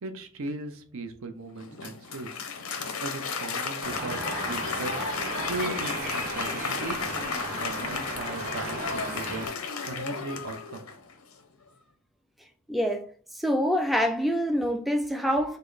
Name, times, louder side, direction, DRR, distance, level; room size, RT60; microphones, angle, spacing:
voice 1, 0.0-2.3 3.0-7.1 7.5-10.9, right 3 dB, 70° right, 0.6 m, -38 dB
Applause, 1.6-11.1, left 5 dB, 85° left, 0.7 m, -34 dB
sound 1, 3.8-9.5, right 2 dB, 40° right, 1.4 m, -35 dB
voice 2, 12.7-13.1 13.3-15.6, equal, ahead, 0.3 m, -25 dB
5.3 x 2.0 x 3.9 m
head